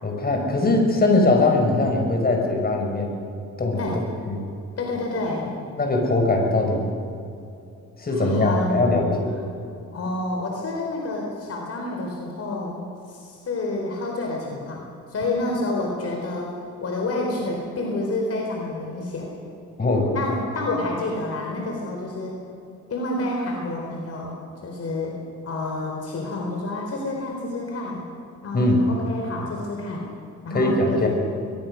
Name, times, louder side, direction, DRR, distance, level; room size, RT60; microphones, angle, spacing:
voice 1, 0.0-3.2 3.6-3.9 4.2-4.4 5.8-6.9 8.0-9.3 19.8-20.1 28.5-28.8 30.5-31.1, left 2 dB, 30° left, 1 dB, 5.8 m, -21 dB
voice 2, 4.8-5.5 8.1-9.1 9.9-19.3 20.1-22.4 22.9-24.3 24.6-25.2 25.4-28.1 28.4-30.1 30.4-31.1, left 2 dB, 50° left, 0 dB, 4.4 m, -29 dB
23.5 x 21.5 x 6.5 m, 2.6 s
cardioid pair, 90°, 30 cm